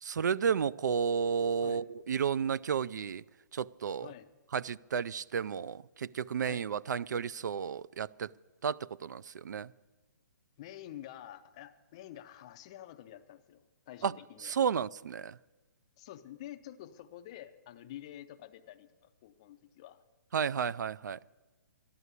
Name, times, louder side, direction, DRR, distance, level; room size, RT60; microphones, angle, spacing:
voice 1, 0.0-3.2 3.5-4.1 4.5-8.3 8.6-9.7 14.0-14.1 14.4-15.3 20.3-21.2, right 7 dB, 70° right, 0.4 m, -32 dB
voice 2, 1.4-1.8 4.0-4.3 6.4-6.7 10.6-14.6 16.0-20.0, left 12 dB, 20° left, 0.4 m, -49 dB
13.5 x 11.0 x 8.2 m
hypercardioid pair, 175°, 10 cm